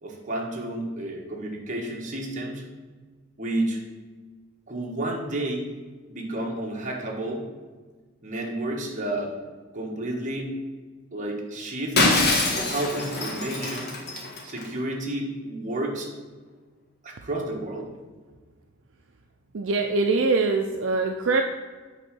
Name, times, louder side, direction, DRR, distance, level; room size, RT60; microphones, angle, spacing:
voice 1, 0.0-2.7 3.4-3.8 4.7-5.7 6.1-7.5 8.2-9.3 9.7-10.5 11.1-12.0 12.6-14.0 14.4-16.1 17.0-17.9, right 1 dB, 40° right, -1 dB, 1.4 m, -31 dB
Shatter, 12.0-14.6, left 2 dB, 55° left, 1.5 m, -24 dB
voice 2, 19.5-21.4, right 3 dB, 70° right, 4 dB, 0.5 m, -23 dB
8.1 x 3.8 x 6.1 m, 1.4 s
head